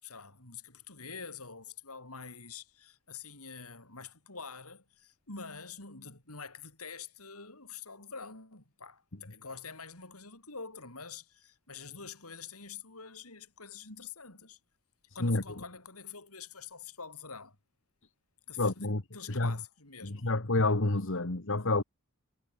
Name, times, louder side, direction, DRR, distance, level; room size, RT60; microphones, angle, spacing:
voice 1, 0.0-14.6 15.1-17.6 18.5-20.3, left 5 dB, 80° left, 7.7 m, -46 dB
voice 2, 18.6-19.0 19.3-19.5 20.0-21.8, left 2 dB, 60° left, 1.7 m, -28 dB
head